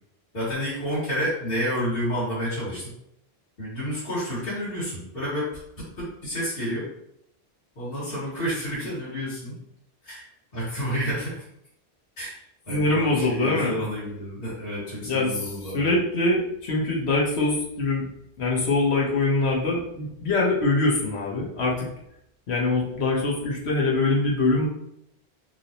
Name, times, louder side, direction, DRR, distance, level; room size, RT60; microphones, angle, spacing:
voice 1, 0.3-2.9 3.6-5.5 5.8-6.9 7.8-9.5 10.0-11.4 12.2-15.8, equal, 55° left, -10 dB, 2.2 m, -30 dB
voice 2, 12.7-13.8 15.0-18.1 18.4-21.9 22.5-24.7, left 2 dB, 80° left, -3 dB, 1.4 m, -23 dB
6.1 x 2.8 x 3.0 m, 0.75 s
omnidirectional pair, 1.1 m